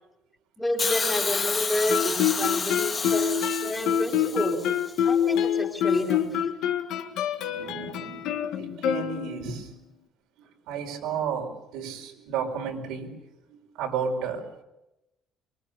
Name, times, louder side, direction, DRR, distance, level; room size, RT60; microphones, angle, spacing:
voice 1, 0.6-4.6 5.0-6.4, left 1 dB, 10° left, 0 dB, 3.3 m, -29 dB
Hiss, 0.8-4.9 5.9-6.0, left 4 dB, 25° left, 2.1 m, -30 dB
Guitar, 1.9-9.6, left 9 dB, 70° left, 1.8 m, -26 dB
voice 2, 7.1-9.7 10.4-13.2 13.5-14.6, right 6 dB, 85° right, 2 dB, 5.0 m, -33 dB
25.5 x 24.0 x 6.9 m, 0.93 s
cardioid pair, 175°, 0 cm